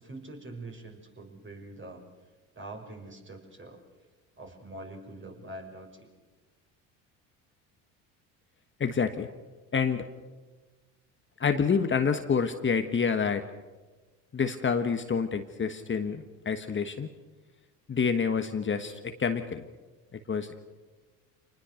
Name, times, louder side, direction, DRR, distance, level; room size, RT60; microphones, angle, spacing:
voice 1, 0.0-2.0 2.5-3.8 4.4-6.1, right 2 dB, 30° right, 3 dB, 6.1 m, -44 dB
voice 2, 8.8-9.3 9.7-10.0 11.4-13.4 14.3-17.1 17.9-19.6 20.1-20.5, left 6 dB, 30° left, 7 dB, 1.4 m, -28 dB
26.5 x 20.0 x 6.5 m, 1.3 s
supercardioid pair, 75°, 40 cm